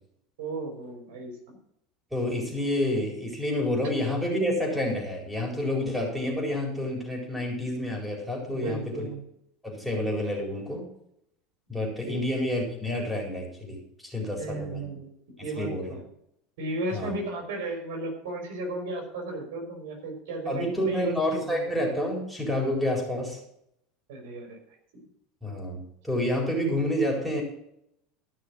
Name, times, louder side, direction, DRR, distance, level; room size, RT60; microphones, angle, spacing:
voice 1, 0.4-1.6 8.5-9.2 12.0-12.2 14.4-15.1 15.4-16.0 16.6-21.7 24.1-25.0, right 2 dB, 85° right, 2 dB, 5.2 m, -35 dB
voice 2, 2.1-9.1 9.6-10.8 11.7-13.8 14.0-14.8 15.6-15.8 16.9-17.1 20.5-23.4 25.4-27.4, left 1 dB, 5° right, 0 dB, 4.3 m, -29 dB
14.5 x 6.4 x 6.2 m, 0.74 s
supercardioid pair, 125°, 0 cm